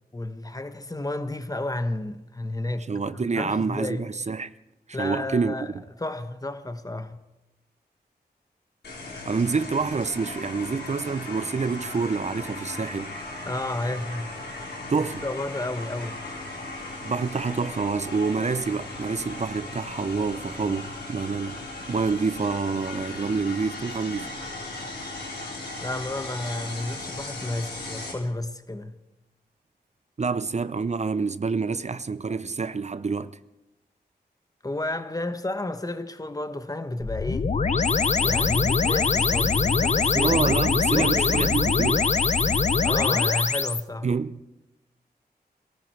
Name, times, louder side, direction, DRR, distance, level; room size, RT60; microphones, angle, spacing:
voice 1, 0.1-2.9 3.1-4.0 4.9-5.7 6.0-7.2 13.4-14.3 15.0-16.2 25.8-29.0 34.6-37.5 38.2-40.4 40.8-41.5 42.5-44.1, left 2 dB, 20° left, 1.3 m, -32 dB
voice 2, 2.9-4.5 4.9-5.5 9.3-13.2 14.9-15.2 17.0-21.6 21.9-24.3 30.2-33.4 40.1-42.1 44.0-44.4, right 4 dB, 40° right, 0.7 m, -27 dB
sound 1, 8.8-28.1, left 2 dB, 75° left, 4.2 m, -37 dB
sound 2, 37.0-43.8, left 4 dB, 45° left, 0.7 m, -23 dB
22.0 x 13.5 x 4.7 m
cardioid pair, 55°, 17 cm